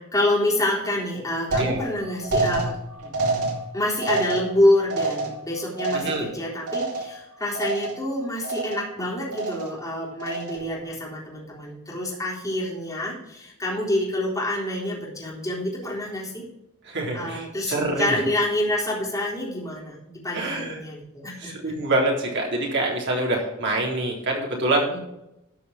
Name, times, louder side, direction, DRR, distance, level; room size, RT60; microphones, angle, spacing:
voice 1, 0.0-2.8 3.0-3.2 3.7-16.4 17.1-21.7 24.9-25.0, left 1 dB, 15° left, -4 dB, 4.0 m, -27 dB
sound 1, 1.5-7.3 7.6-8.1 8.4-9.0 9.3-9.8 10.2-10.8, right 2 dB, 80° right, 3.8 m, -28 dB
voice 2, 5.9-6.3 16.9-18.1 20.3-20.8 21.4-24.9, right 2 dB, 55° right, -1 dB, 3.8 m, -25 dB
13.0 x 5.7 x 6.0 m, 0.86 s
head